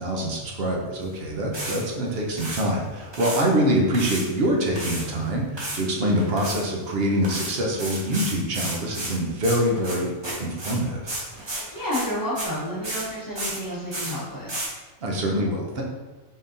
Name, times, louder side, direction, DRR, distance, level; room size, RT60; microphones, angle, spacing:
voice 1, 0.0-10.1 10.4-11.1 15.0-15.8, equal, 55° right, 0 dB, 0.8 m, -25 dB
sound 1, 1.0-1.1 1.5-1.8 2.2-2.6 3.0-3.4 3.9-5.1 5.6-5.9 6.1-6.6 7.2-12.6 12.8-13.1 13.4-13.6 13.9-14.2 14.5-14.7, right 1 dB, 30° right, 0.5 m, -32 dB
voice 2, 11.7-14.6, equal, 15° left, -7 dB, 1.1 m, -30 dB
4.1 x 3.5 x 2.6 m, 1.2 s
omnidirectional pair, 1.4 m